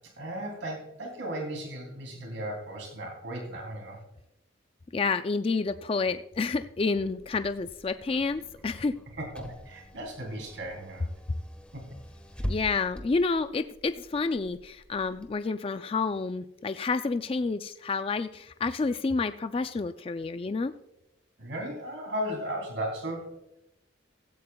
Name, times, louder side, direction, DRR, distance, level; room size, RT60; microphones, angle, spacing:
voice 1, 0.2-4.0 9.2-11.1 11.7-11.8 21.4-23.3, right 1 dB, 80° right, 1 dB, 3.1 m, -36 dB
voice 2, 4.9-9.0 12.4-20.7, left 4 dB, 30° left, 10 dB, 0.3 m, -29 dB
Car / Engine, 7.0-15.3, equal, 5° left, 1.1 m, -43 dB
15.5 x 15.5 x 2.3 m, 0.88 s
head